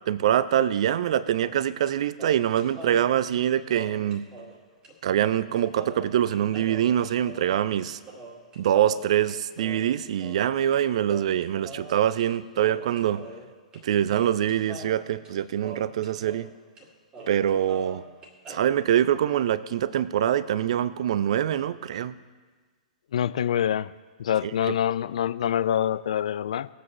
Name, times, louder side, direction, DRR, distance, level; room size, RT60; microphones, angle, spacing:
voice 1, 0.1-4.2 5.0-8.0 8.6-13.2 13.8-16.5 17.3-18.0 18.5-22.1 24.4-24.7, right 10 dB, 50° right, 18 dB, 0.5 m, -24 dB
sound 1, 1.4-1.9 2.2-4.6 4.8-4.9 5.2-10.8 11.1-12.3 12.5-13.8 14.1-16.5 16.8-16.9 17.1-18.6, right 1 dB, 20° right, 2.1 m, -44 dB
voice 2, 23.1-23.9 24.2-26.7, left 10 dB, 55° left, 15 dB, 0.4 m, -25 dB
20.0 x 8.1 x 3.1 m, 1.4 s
figure-of-eight pair, 110°, 4 cm